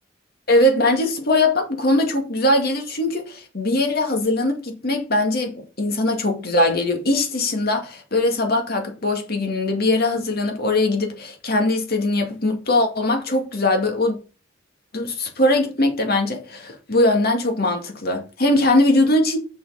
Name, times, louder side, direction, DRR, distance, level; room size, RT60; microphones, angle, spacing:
voice 1, 0.5-14.2 14.9-19.4, left 1 dB, 55° left, 2.2 m, -21 dB
6.6 x 5.9 x 5.7 m
head